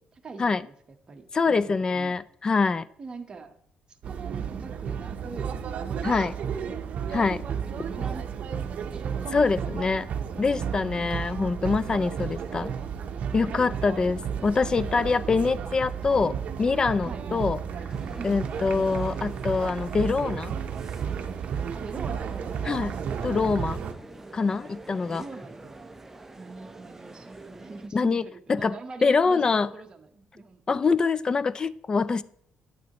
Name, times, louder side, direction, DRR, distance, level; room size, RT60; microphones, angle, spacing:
voice 1, 0.0-2.2 3.0-3.5 3.9-5.6 5.9-6.8 7.6-9.8 10.4-10.7 11.9-12.9 13.2-13.6 17.0-17.3 18.2-18.4 21.7-22.8 23.4-23.6 24.9-25.8 26.4-30.6 32.1-32.2, right 4 dB, 30° right, 4 dB, 1.1 m, -43 dB
voice 2, 1.3-2.9 6.0-6.3 7.1-7.4 9.3-10.1 10.4-12.7 13.3-17.6 18.2-20.5 22.7-22.9 23.2-23.8 24.3-25.2 27.9-28.2 28.5-28.8 29.0-29.7 30.7-32.2, left 4 dB, 30° left, 18 dB, 0.3 m, -25 dB
sound 1, 4.0-23.9, right 7 dB, 60° right, 0.7 m, -33 dB
sound 2, 17.9-27.9, right 2 dB, 10° right, 0.6 m, -46 dB
9.1 x 8.3 x 3.0 m, 0.67 s
cardioid pair, 115°, 3 cm